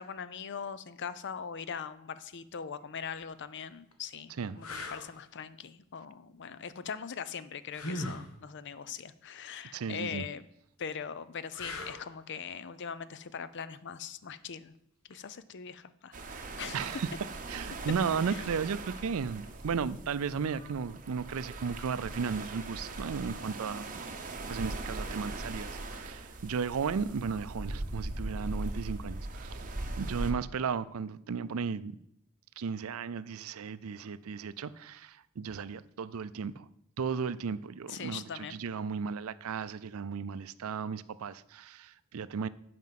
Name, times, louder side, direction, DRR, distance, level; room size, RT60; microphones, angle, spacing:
voice 1, 0.0-10.4 10.8-14.7 15.1-16.1 16.6-17.0 18.3-18.4 37.9-38.6, left 6 dB, 55° left, 0.5 m, -41 dB
sound 1, 3.0-3.2 3.9-4.0 4.6-5.1 7.7-8.3 11.5-12.1 15.1-15.3, left 1 dB, 75° left, 1.4 m, -38 dB
voice 2, 9.7-10.3 16.7-17.1 17.5-23.9 24.5-29.6 30.0-31.9 32.6-36.7 37.0-42.5, right 6 dB, 75° right, 0.4 m, -35 dB
sound 2, 16.1-30.3, right 2 dB, 40° right, 1.0 m, -40 dB
9.4 x 5.2 x 7.5 m
head